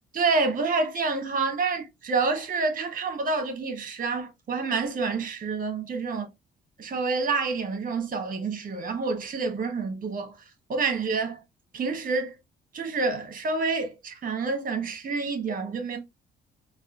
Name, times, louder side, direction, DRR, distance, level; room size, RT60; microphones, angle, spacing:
voice 1, 0.1-6.3 6.8-10.4 10.7-11.4 11.7-12.4 12.7-16.0, right 4 dB, 45° right, 1.2 m, -28 dB
4.1 x 2.4 x 2.5 m
cardioid pair, 90°, 20 cm